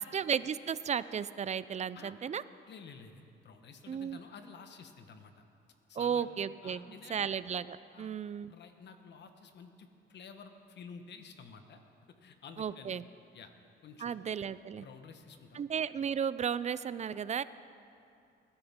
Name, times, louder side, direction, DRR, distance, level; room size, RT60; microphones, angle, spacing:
voice 1, 0.0-2.4 3.9-4.2 6.0-6.8 7.1-8.5 12.6-13.0 14.0-14.9 15.5-17.4, right 7 dB, 35° right, 16 dB, 0.4 m, -34 dB
voice 2, 2.7-5.4 5.9-6.3 6.6-7.3 7.9-11.8 12.1-13.0 13.3-13.5 13.8-14.1 14.8-15.6, left 5 dB, 60° left, 7 dB, 1.2 m, -51 dB
21.0 x 11.5 x 3.6 m, 2.5 s
cardioid pair, 90°, 20 cm